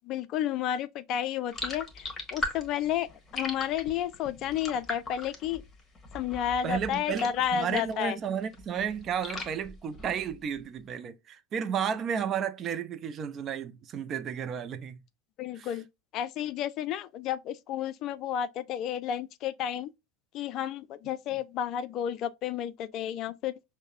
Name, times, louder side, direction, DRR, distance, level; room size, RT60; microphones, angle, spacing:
voice 1, 0.1-2.1 2.3-3.1 3.3-5.6 6.1-8.2 15.4-15.9 16.1-19.9 20.3-23.5, left 10 dB, 45° left, 0.3 m, -31 dB
sound 1, 1.5-8.1 8.4-10.5, left 1 dB, 20° left, 1.2 m, -39 dB
voice 2, 6.6-15.0 15.6-15.8, right 7 dB, 35° right, 0.4 m, -33 dB
6.2 x 2.1 x 2.4 m
figure-of-eight pair, 75°, 0 cm